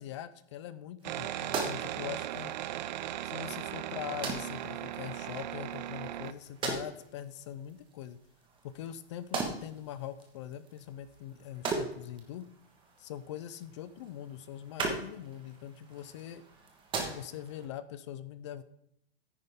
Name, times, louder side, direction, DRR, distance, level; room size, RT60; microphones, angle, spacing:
voice 1, 0.0-2.6 3.2-8.2 8.7-12.5 13.0-16.4 17.1-18.6, left 11 dB, 30° left, 14 dB, 0.4 m, -42 dB
sound 1, 1.0-17.7, right 4 dB, 15° right, 1.4 m, -41 dB
sound 2, 1.0-6.3, right 12 dB, 45° right, 0.5 m, -37 dB
9.8 x 9.5 x 3.6 m, 0.71 s
hypercardioid pair, 160°, 31 cm